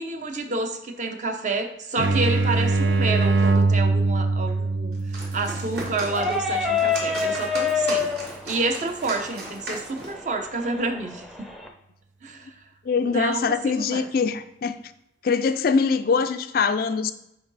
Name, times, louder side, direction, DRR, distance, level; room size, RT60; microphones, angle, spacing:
voice 1, 0.0-5.0 5.3-8.1 8.4-11.5 12.2-12.5 13.0-14.1, right 3 dB, 40° right, 5 dB, 0.7 m, -29 dB
sound 1, 2.0-7.5, right 3 dB, 85° right, 0.6 m, -23 dB
sound 2, 4.9-10.2, right 1 dB, 60° right, 1.7 m, -37 dB
sound 3, 6.1-11.7, left 5 dB, ahead, 0.5 m, -28 dB
voice 2, 12.9-14.8 15.2-17.1, left 5 dB, 50° left, 11 dB, 0.3 m, -23 dB
6.7 x 4.6 x 4.0 m, 0.80 s
head